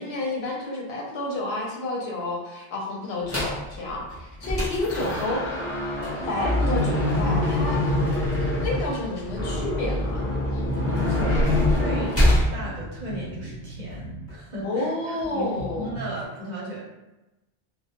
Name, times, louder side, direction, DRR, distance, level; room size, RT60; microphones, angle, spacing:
voice 1, 0.0-5.4 6.3-7.8 8.6-10.3 14.6-15.9, left 2 dB, 90° left, -2 dB, 0.9 m, -30 dB
sound 1, 3.3-3.6 4.1-12.5, left 1 dB, 15° left, 0.6 m, -24 dB
sound 2, 4.7-16.3, right 1 dB, 55° left, 0.7 m, -41 dB
voice 2, 10.8-11.4 11.7-12.2 12.5-16.8, right 1 dB, 50° right, -5 dB, 0.7 m, -36 dB
2.2 x 2.0 x 2.8 m, 1.0 s
omnidirectional pair, 1.0 m